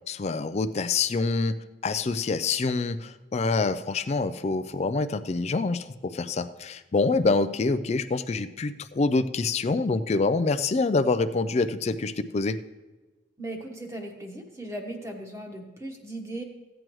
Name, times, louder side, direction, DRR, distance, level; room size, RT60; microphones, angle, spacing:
voice 1, 0.1-1.6 1.8-12.6, left 3 dB, 35° left, 12 dB, 0.4 m, -26 dB
voice 2, 13.4-16.4, right 1 dB, 15° right, 2 dB, 1.1 m, -37 dB
15.0 x 9.0 x 3.1 m, 1.2 s
head